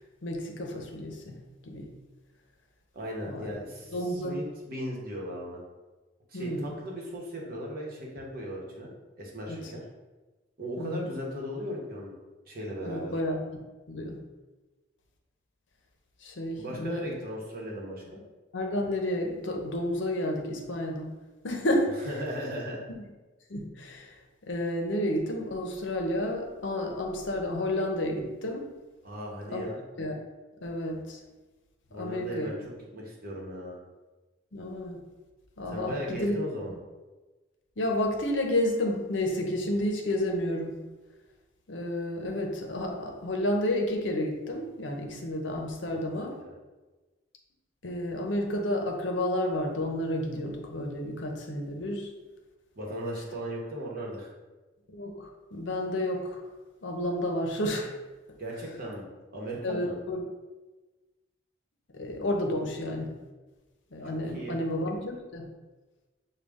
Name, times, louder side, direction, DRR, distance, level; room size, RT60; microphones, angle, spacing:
voice 1, 0.2-1.4 1.7-1.9 3.2-3.5 3.9-4.4 6.3-6.7 9.5-9.6 10.8-11.0 12.8-13.4 13.9-14.2 16.2-17.0 18.5-21.1 21.4-22.1 23.5-24.1 24.5-28.7 29.5-29.6 30.0-30.1 30.6-31.2 32.0-32.5 34.5-35.0 35.6-36.3 37.8-40.7 41.7-46.3 47.8-52.1 54.9-56.4 56.8-57.9 59.6-60.2 61.9-63.1 63.9-65.5, left 1 dB, 70° left, 2 dB, 0.7 m, -31 dB
voice 2, 2.9-5.6 6.3-8.9 9.2-9.8 10.6-12.1 12.5-13.1 16.6-18.2 22.0-22.8 29.0-29.8 31.9-33.8 35.7-36.7 46.1-46.6 52.8-54.3 58.4-59.1 59.3-59.9 64.0-64.6, equal, 50° right, -2 dB, 1.0 m, -37 dB
6.4 x 2.3 x 3.5 m, 1.2 s
head